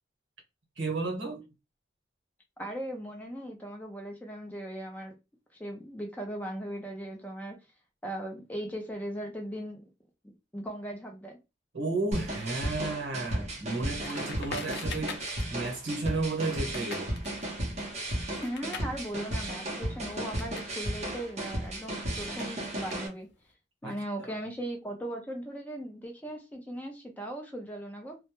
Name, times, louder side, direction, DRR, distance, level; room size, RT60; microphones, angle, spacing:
voice 1, 0.8-1.4 11.7-17.1 23.8-24.0 24.2-24.3, right 3 dB, 80° right, 0.9 m, -33 dB
voice 2, 2.6-5.1 5.6-7.6 8.0-9.8 10.2-11.4 18.4-23.3 23.8-28.2, right 1 dB, 10° left, 0.4 m, -38 dB
sound 1, 12.1-23.1, right 1 dB, 35° right, 0.7 m, -34 dB
Crackle, 14.0-20.7 21.0-23.4, left 5 dB, 75° left, 0.5 m, -45 dB
2.1 x 2.1 x 2.9 m
head